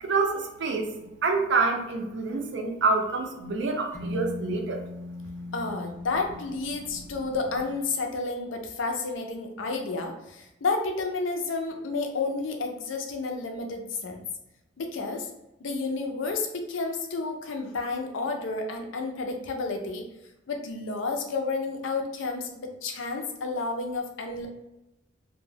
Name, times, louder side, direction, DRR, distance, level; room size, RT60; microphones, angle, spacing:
voice 1, 0.0-4.8, right 3 dB, 60° right, 4 dB, 0.4 m, -27 dB
sound 1, 3.9-7.8, left 2 dB, 10° left, 0.4 m, -39 dB
voice 2, 5.5-14.2 14.8-15.3 15.6-20.1 20.5-24.5, left 3 dB, 80° left, 3 dB, 0.5 m, -31 dB
2.2 x 2.1 x 3.2 m, 0.92 s
head